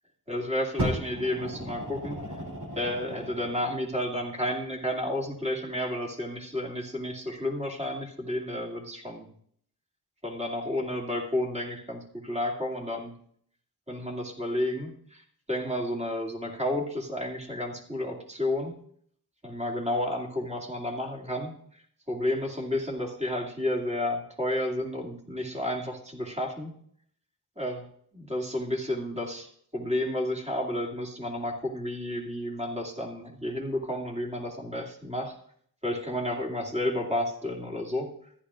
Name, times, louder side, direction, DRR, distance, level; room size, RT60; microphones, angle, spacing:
voice 1, 0.3-2.2 2.8-9.3 10.2-13.1 13.9-18.8 19.4-21.5 22.1-26.7 27.6-27.9 28.1-29.5 29.7-35.3 35.8-38.1, left 1 dB, 15° right, -1 dB, 2.4 m, -31 dB
Fire, 0.8-3.6 4.4-4.5, equal, 80° right, 3.3 m, -35 dB
14.0 x 11.0 x 2.5 m, 0.64 s
cardioid pair, 55°, 39 cm